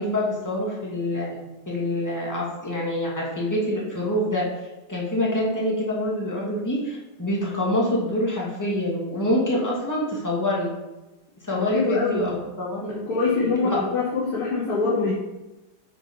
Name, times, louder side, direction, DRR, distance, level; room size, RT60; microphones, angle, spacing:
voice 1, 0.0-4.5 4.9-10.7 11.4-13.8, left 1 dB, 10° left, -4 dB, 2.4 m, -26 dB
voice 2, 11.5-12.3 13.1-15.1, left 4 dB, 75° left, -9 dB, 3.3 m, -24 dB
9.2 x 6.0 x 5.6 m, 1.0 s
omnidirectional pair, 2.4 m